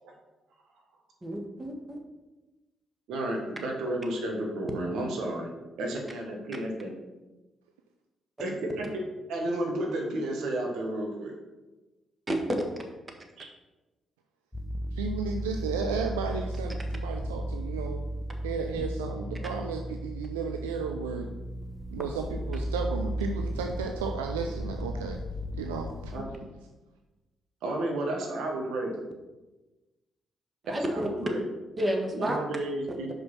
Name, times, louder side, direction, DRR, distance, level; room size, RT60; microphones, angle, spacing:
voice 1, 1.2-2.0 12.3-12.4 30.7-31.1 31.8-32.4 32.9-33.1, right 1 dB, 25° right, 3 dB, 1.6 m, -30 dB
voice 2, 3.1-5.5 5.8-6.9 8.4-9.0 9.3-11.3 13.4-13.5 26.1-26.4 27.6-29.0 30.9-31.4 32.1-33.1, right 1 dB, 70° right, 1 dB, 1.5 m, -32 dB
sound 1, 14.5-26.2, equal, 15° left, 0.8 m, -35 dB
voice 3, 14.9-18.0 18.4-21.3 21.9-25.2 25.5-26.1, right 5 dB, 90° right, 4 dB, 0.4 m, -34 dB
5.7 x 5.3 x 5.8 m, 1.1 s
hypercardioid pair, 45°, 0 cm